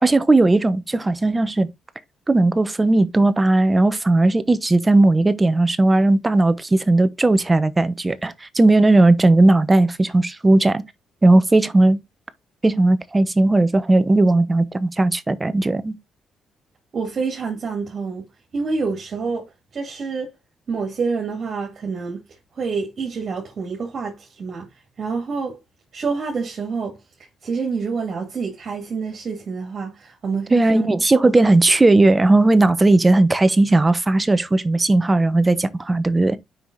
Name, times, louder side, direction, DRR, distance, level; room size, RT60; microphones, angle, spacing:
voice 1, 0.0-1.7 2.3-10.8 11.2-12.0 12.6-16.0 30.5-36.4, right 2 dB, 20° right, 0.9 m, -17 dB
voice 2, 16.9-18.2 18.5-19.5 19.7-20.3 20.7-22.2 22.6-24.7 25.0-25.6 25.9-27.0 27.4-30.9 31.4-31.5, right 4 dB, 50° right, 2.3 m, -27 dB
5.8 x 5.5 x 4.0 m
cardioid pair, 90°, 0 cm